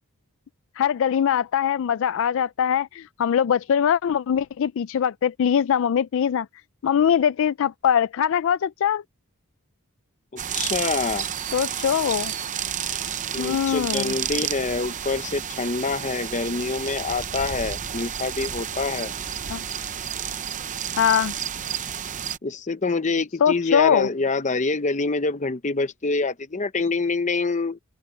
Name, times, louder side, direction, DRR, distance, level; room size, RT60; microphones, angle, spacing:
voice 1, 0.8-6.5 6.8-9.0 11.5-12.3 13.4-14.1 19.5-19.6 21.0-21.3 23.4-24.1, left 8 dB, 60° left, 0.3 m, -22 dB
sound 1, 10.4-22.4, right 9 dB, 35° right, 0.6 m, -31 dB
voice 2, 10.5-11.3 13.3-19.1 22.4-27.8, left 3 dB, 35° left, 0.7 m, -26 dB
head